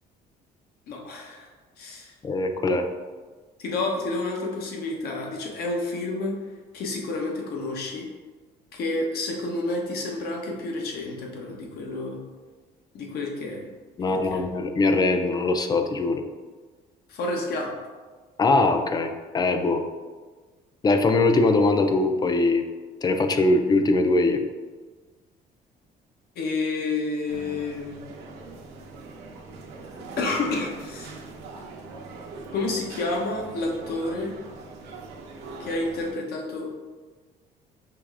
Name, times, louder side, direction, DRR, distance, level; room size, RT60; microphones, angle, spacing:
voice 1, 0.9-1.5 1.8-2.1 3.6-6.4 6.7-8.1 8.7-12.2 12.9-13.7 14.1-14.4 17.1-17.7 26.4-28.0 30.2-31.2 32.5-34.3 35.6-36.7, left 2 dB, 70° left, 0 dB, 0.8 m, -29 dB
voice 2, 2.2-2.9 14.0-16.2 18.4-19.8 20.8-22.6 23.0-24.4, left 2 dB, 25° left, 6 dB, 0.3 m, -21 dB
sound 1, 27.3-36.1, right 3 dB, 80° right, 0.7 m, -42 dB
4.8 x 3.1 x 2.4 m, 1.4 s
cardioid pair, 110°, 17 cm